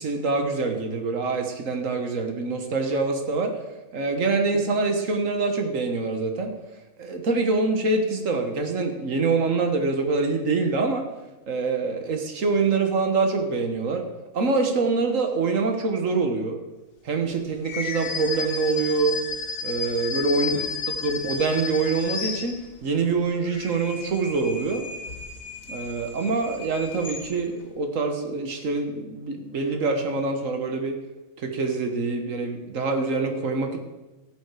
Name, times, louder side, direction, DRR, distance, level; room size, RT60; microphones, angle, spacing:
voice 1, 0.0-3.5 3.9-6.5 7.0-11.1 11.5-14.0 14.3-16.6 17.0-19.2 19.6-20.6 21.0-24.8 25.7-31.0 31.4-33.8, right 4 dB, 65° right, 5 dB, 1.6 m, -25 dB
sound 1, 17.6-22.9 23.4-27.6, left 5 dB, 70° left, 1.6 m, -33 dB
14.0 x 7.9 x 4.8 m, 1.1 s
omnidirectional pair, 1.5 m